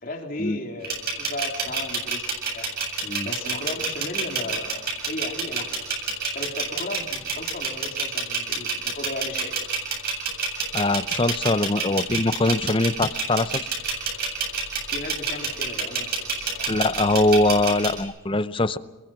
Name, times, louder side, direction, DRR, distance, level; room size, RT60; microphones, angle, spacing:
voice 1, 0.0-2.3 2.5-2.7 3.2-5.7 6.3-9.6 14.9-16.7, left 1 dB, 45° left, 2 dB, 3.4 m, -35 dB
sound 1, 0.8-18.0, right 4 dB, 50° right, 7.9 m, -28 dB
voice 2, 10.7-13.7 16.7-18.8, left 2 dB, 25° left, 14 dB, 0.7 m, -22 dB
29.0 x 21.5 x 6.0 m, 1.3 s
head